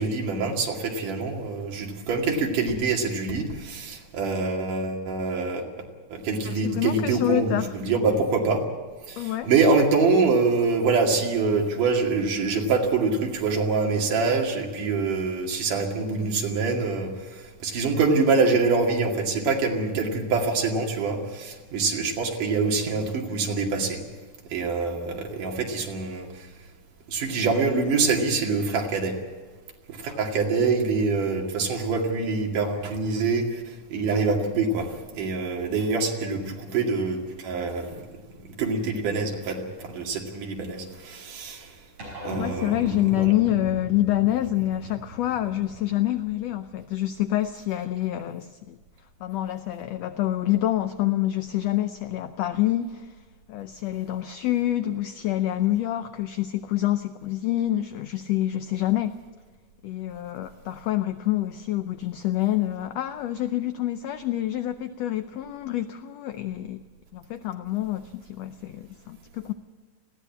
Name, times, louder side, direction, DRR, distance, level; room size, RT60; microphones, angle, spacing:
voice 1, 0.0-5.6 6.1-8.6 9.2-17.1 17.6-24.0 24.5-26.3 27.1-29.1 30.0-33.5 33.9-34.9 35.2-37.2 37.4-37.9 38.6-39.6 39.8-41.6 42.3-42.8 43.2-43.3, right 4 dB, 80° right, 1 dB, 3.9 m, -25 dB
voice 2, 6.4-7.6 9.2-9.5 42.4-48.8 49.2-53.1 53.5-59.1 59.8-66.8 67.1-69.5, left 13 dB, 75° left, 11 dB, 1.5 m, -27 dB
sound 1, 42.0-46.7, equal, 40° right, 6.3 m, -40 dB
20.0 x 15.5 x 8.5 m, 1.5 s
omnidirectional pair, 3.6 m